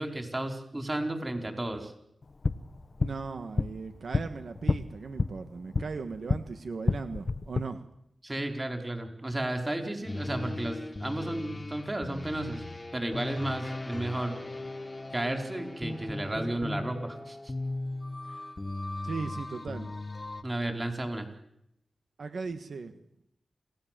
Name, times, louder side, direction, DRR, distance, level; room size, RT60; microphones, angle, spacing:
voice 1, 0.0-1.9 8.2-12.6 12.9-14.4 15.1-17.4 20.4-21.3, right 1 dB, 20° right, 5 dB, 4.6 m, -33 dB
sound 1, 2.2-6.5 6.8-7.6, left 3 dB, 50° left, 1.0 m, -30 dB
voice 2, 3.0-7.9 19.0-19.9 22.2-23.0, right 4 dB, 75° right, 8 dB, 1.6 m, -38 dB
sound 2, 10.1-20.4, left 2 dB, 30° left, 1.7 m, -38 dB
28.0 x 17.5 x 7.6 m, 0.78 s
wide cardioid pair, 75°, 0 cm